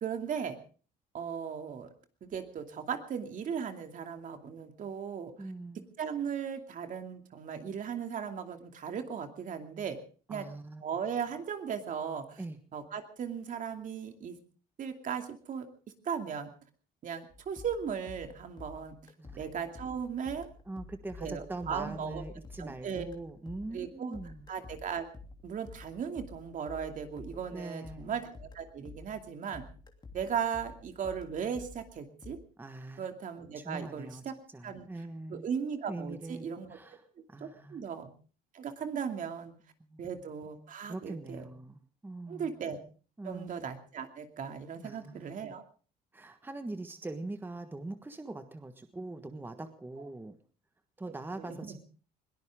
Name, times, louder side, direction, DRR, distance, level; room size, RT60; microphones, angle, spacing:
voice 1, 0.0-0.6 1.1-1.9 2.2-5.3 6.0-10.0 10.3-10.5 10.8-12.4 12.7-14.4 14.8-15.7 16.0-16.5 17.0-18.9 19.4-20.5 21.2-22.2 22.6-23.0 23.7-24.2 24.5-25.1 25.4-29.6 30.1-32.4 33.0-34.3 34.6-34.9 35.3-36.8 37.7-38.1 38.5-39.6 40.0-41.5 42.3-42.8 43.2-45.6 51.4-51.8, right 7 dB, 50° right, 6 dB, 2.6 m, -37 dB
voice 2, 5.4-5.9 10.3-10.8 12.4-12.6 19.2-19.4 20.7-24.4 27.5-28.1 32.6-33.0 33.6-34.2 34.5-35.4 35.9-36.4 36.7-37.0 37.3-37.8 39.9-40.0 40.9-42.5 43.2-43.6 44.8-45.3 46.1-50.3 51.0-51.8, right 2 dB, 10° right, 8 dB, 1.4 m, -42 dB
sound 1, 17.3-29.3 29.5-32.3, left 3 dB, 25° left, 2.9 m, -50 dB
21.5 x 18.5 x 3.7 m, 0.40 s
cardioid pair, 110°, 17 cm